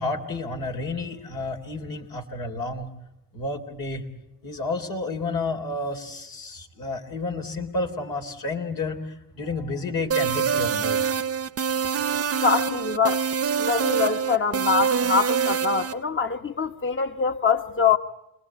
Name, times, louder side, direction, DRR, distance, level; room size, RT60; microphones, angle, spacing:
voice 1, 0.0-2.9 3.3-4.0 4.4-11.1, left 3 dB, 85° left, 3.7 m, -31 dB
sound 1, 10.1-15.9, right 7 dB, 45° right, 0.9 m, -25 dB
voice 2, 12.4-13.3 13.6-18.0, left 5 dB, 35° left, 1.2 m, -24 dB
28.5 x 20.5 x 8.5 m
supercardioid pair, 45°, 34 cm